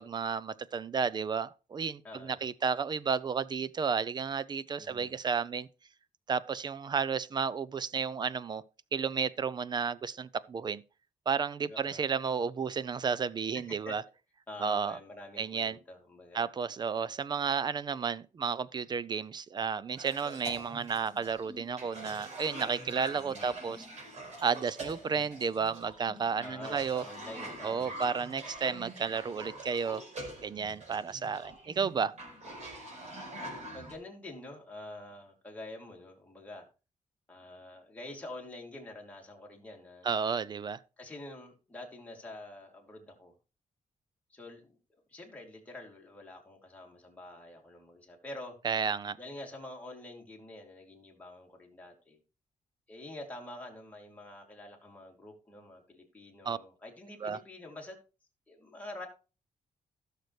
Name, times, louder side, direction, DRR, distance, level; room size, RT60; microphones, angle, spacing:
voice 1, 0.0-5.7 6.3-8.6 8.9-10.8 11.3-14.0 14.6-15.0 15.4-15.8 16.3-23.8 24.4-27.0 27.6-30.0 30.4-32.1 40.0-40.8 48.6-49.2 56.4-56.6 57.2-57.4, right 6 dB, 30° right, 0.5 m, -32 dB
voice 2, 2.0-2.4 4.8-5.2 11.7-12.0 13.5-13.9 14.5-16.4 23.1-23.6 26.4-28.0 30.9-31.2 33.7-36.7 37.3-40.2 41.0-43.3 44.3-44.8 45.1-48.5 49.2-52.2 52.9-58.0 58.5-59.1, left 1 dB, 10° left, 2.8 m, -47 dB
Cough, 20.0-33.9, right 1 dB, 55° right, 4.7 m, -45 dB
16.0 x 6.7 x 3.2 m
wide cardioid pair, 155°, 14 cm